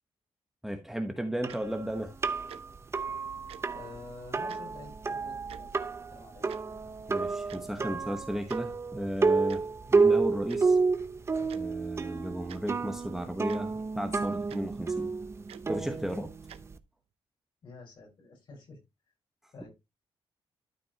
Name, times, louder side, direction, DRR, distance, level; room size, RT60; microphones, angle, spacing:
voice 1, 0.6-2.1 7.1-10.8 11.5-15.1 15.7-16.3, equal, 5° right, 1.1 m, -34 dB
sound 1, 1.4-16.8, right 4 dB, 25° right, 0.7 m, -30 dB
Tick-tock, 1.5-1.6 2.5-2.6 3.5-3.6 4.5-4.6 5.5-5.6 6.5-6.6 7.5-7.7 8.5-8.6 9.5-9.6 10.5-10.6 11.5-11.6 12.5-12.6 13.5-13.6 14.5-14.6 15.5-15.7 16.5-16.6, right 10 dB, 80° right, 0.8 m, -47 dB
voice 2, 3.7-5.8 6.1-6.5 17.6-18.8 19.5-19.7, left 3 dB, 55° left, 4.7 m, -48 dB
12.5 x 5.2 x 2.9 m
cardioid pair, 125°, 10 cm